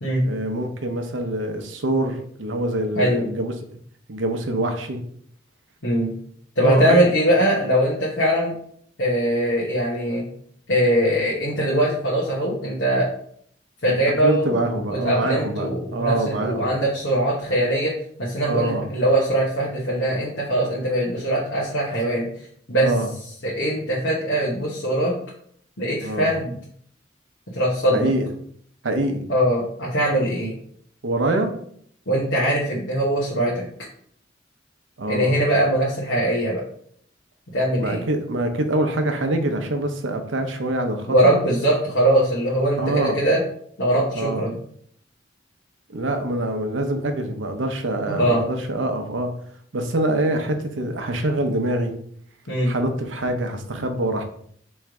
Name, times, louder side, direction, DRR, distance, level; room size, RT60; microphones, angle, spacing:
voice 1, 0.2-3.5 4.1-5.0 6.6-7.1 14.2-16.7 18.5-18.8 22.8-23.1 26.0-26.3 27.9-28.3 28.8-29.2 31.0-31.5 35.0-35.4 37.8-41.4 42.8-43.2 44.2-44.5 45.9-49.3 49.7-51.9 52.6-54.2, right 1 dB, 90° right, 5 dB, 0.7 m, -25 dB
voice 2, 2.9-3.3 5.8-6.1 6.6-8.5 9.0-10.3 10.7-13.1 13.8-14.6 14.9-17.9 18.2-22.3 22.7-22.9 23.4-25.1 25.8-26.5 27.5-28.1 29.3-30.5 32.1-33.7 35.1-36.6 37.5-38.0 41.1-43.4 43.8-44.6 48.1-48.4 52.5-52.7, right 1 dB, 70° left, -6 dB, 1.2 m, -21 dB
3.5 x 3.2 x 4.7 m, 0.63 s
head